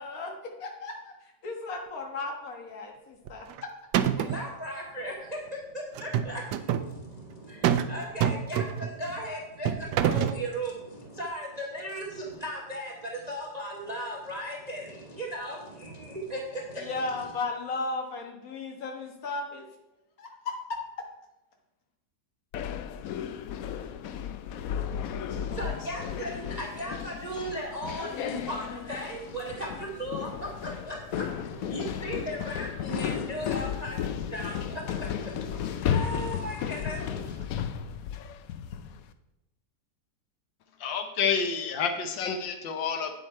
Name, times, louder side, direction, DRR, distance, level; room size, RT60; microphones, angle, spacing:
voice 1, 0.0-3.9 16.8-19.7 20.2-20.8, left 3 dB, 55° left, 2 dB, 1.8 m, -35 dB
sound 1, 3.3-3.6 3.9-4.5 5.9-6.9 7.6-7.9 8.2-9.0 9.6-10.4, right 10 dB, 75° right, 1.2 m, -26 dB
voice 2, 4.2-17.3 25.3-37.4, right 1 dB, 25° right, -1 dB, 1.0 m, -37 dB
sound 2, 22.5-39.0, left 9 dB, 70° left, 0.8 m, -34 dB
voice 3, 40.8-43.2, left 6 dB, 90° left, 6 dB, 1.6 m, -29 dB
9.3 x 7.6 x 4.4 m, 0.94 s
omnidirectional pair, 2.0 m